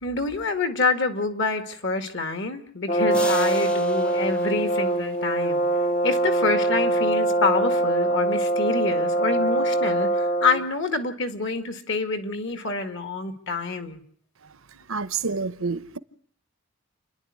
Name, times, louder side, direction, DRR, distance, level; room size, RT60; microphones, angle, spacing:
voice 1, 0.0-5.6 6.0-14.0, left 4 dB, 55° left, 2.0 m, -27 dB
Brass instrument, 2.9-10.7, right 1 dB, 35° left, 1.0 m, -23 dB
sound 1, 3.1-5.6, equal, 5° left, 0.8 m, -38 dB
voice 2, 14.9-16.0, right 4 dB, 65° right, 0.9 m, -28 dB
29.0 x 11.0 x 9.6 m
head